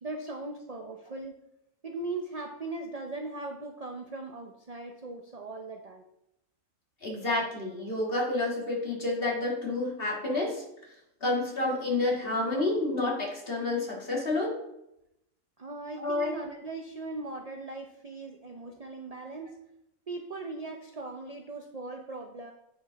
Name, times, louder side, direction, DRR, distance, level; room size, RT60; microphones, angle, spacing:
voice 1, 0.0-1.4 1.8-6.0 15.6-19.5 20.1-22.5, right 2 dB, 45° right, 3 dB, 0.5 m, -39 dB
voice 2, 7.0-10.6 11.2-14.6 16.0-16.3, left 2 dB, 40° left, -3 dB, 2.3 m, -29 dB
9.2 x 5.2 x 4.0 m, 0.83 s
omnidirectional pair, 1.4 m